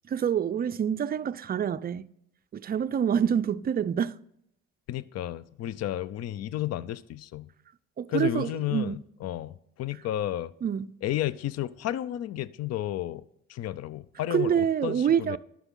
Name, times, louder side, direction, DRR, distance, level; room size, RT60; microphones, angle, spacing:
voice 1, 0.1-2.1 2.5-4.1 8.0-9.0 10.6-10.9 14.3-15.4, right 8 dB, 30° right, 0.4 m, -26 dB
voice 2, 4.9-7.5 8.1-10.5 11.0-13.2 13.5-15.4, left 13 dB, 55° left, 0.5 m, -32 dB
11.5 x 6.2 x 3.7 m
cardioid pair, 90°, 30 cm